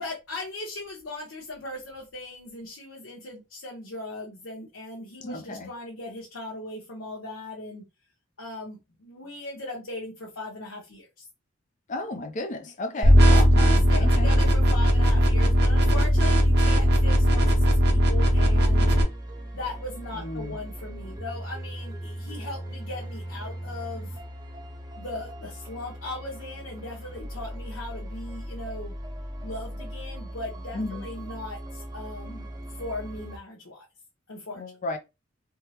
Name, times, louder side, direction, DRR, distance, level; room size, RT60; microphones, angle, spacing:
voice 1, 0.0-7.9 8.4-11.3 12.9-18.9 19.5-24.2 25.0-28.9 29.4-33.9 34.3-34.6, left 2 dB, 80° left, 0.9 m, -38 dB
voice 2, 5.2-5.7 11.9-14.3 20.2-20.6 30.7-31.0 34.6-35.0, left 2 dB, 40° left, 0.5 m, -33 dB
sound 1, 13.0-19.0, equal, 55° right, 0.8 m, -18 dB
sound 2, 18.3-33.4, equal, 20° right, 0.7 m, -38 dB
3.5 x 2.0 x 2.8 m
head